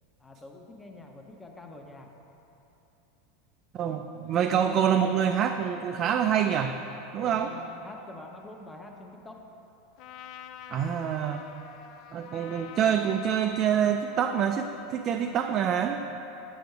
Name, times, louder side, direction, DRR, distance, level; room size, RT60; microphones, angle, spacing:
voice 1, 0.2-2.1 7.2-9.4, left 2 dB, 15° left, 2 dB, 0.8 m, -45 dB
voice 2, 3.7-6.8 7.1-7.5 10.7-11.4 12.1-16.0, right 8 dB, 40° right, 5 dB, 0.3 m, -26 dB
Trumpet, 10.0-14.9, left 9 dB, 55° left, 0.4 m, -46 dB
7.8 x 5.2 x 4.7 m, 3.0 s
hypercardioid pair, 95°, 0 cm